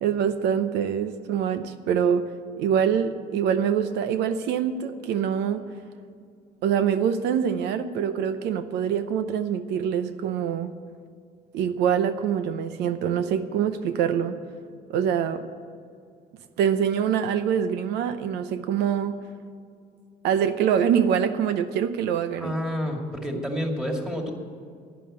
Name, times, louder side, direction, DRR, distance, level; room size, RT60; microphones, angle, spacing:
voice 1, 0.0-2.3 2.6-5.7 6.6-10.7 11.5-14.4 14.9-15.5 16.6-19.2 20.2-22.5, right 8 dB, 85° right, 10 dB, 0.8 m, -24 dB
voice 2, 22.4-24.3, equal, 5° right, 1 dB, 2.4 m, -29 dB
11.0 x 9.9 x 8.7 m, 2.3 s
cardioid pair, 110°, 17 cm